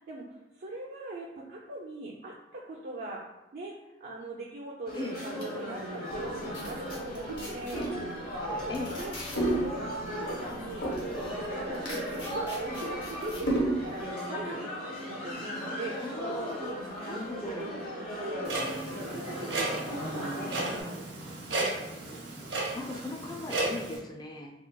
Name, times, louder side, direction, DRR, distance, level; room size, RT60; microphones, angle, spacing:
voice 1, 0.0-3.2 3.5-8.2 8.5-9.1 9.4-14.7 15.1-16.0 16.6-17.4 18.3-20.4 20.7-21.4, right 2 dB, 65° right, -4 dB, 0.4 m, -42 dB
sound 1, 4.8-20.8, equal, 55° left, 1.0 m, -37 dB
sound 2, 6.1-14.0, right 1 dB, 90° left, 0.8 m, -34 dB
voice 2, 16.0-16.7 17.0-17.7 22.7-24.5, left 2 dB, 25° left, 2 dB, 0.4 m, -38 dB
Clock, 18.4-24.0, right 2 dB, 85° right, 0.8 m, -34 dB
3.7 x 2.3 x 2.2 m, 1.0 s
head